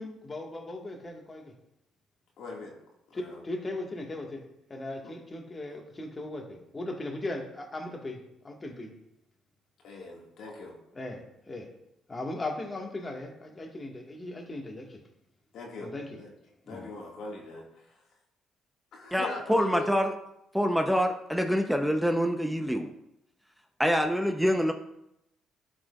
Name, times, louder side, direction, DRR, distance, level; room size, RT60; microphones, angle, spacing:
voice 1, 0.0-1.5 3.1-4.4 4.7-8.9 10.9-11.7 12.1-15.0 15.8-16.2 16.7-16.9, left 2 dB, 30° left, 1 dB, 1.8 m, -38 dB
voice 2, 2.4-2.7 3.1-3.4 5.0-5.1 9.8-10.8 15.5-15.9 16.2-16.3 16.6-18.0 18.9-19.9, left 2 dB, 70° left, -1 dB, 2.1 m, -41 dB
voice 3, 19.1-20.1 20.5-22.9 23.8-24.7, equal, 5° right, 4 dB, 0.9 m, -26 dB
13.5 x 4.9 x 2.5 m, 0.82 s
supercardioid pair, 60°, 0 cm